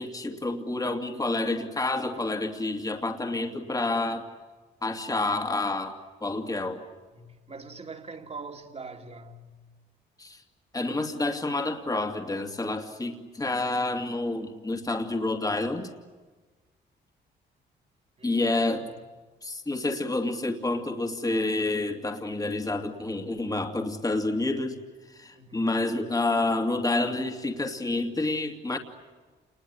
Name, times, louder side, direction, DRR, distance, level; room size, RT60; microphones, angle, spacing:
voice 1, 0.0-4.3 4.8-6.8 10.2-10.4 10.7-15.9 18.2-18.8 19.4-24.8 25.1-28.8, left 2 dB, 20° left, 2.7 m, -29 dB
voice 2, 7.1-9.6 18.2-18.9 25.3-25.8, right 3 dB, 30° right, 2.9 m, -43 dB
28.5 x 21.0 x 10.0 m
cardioid pair, 90°, 20 cm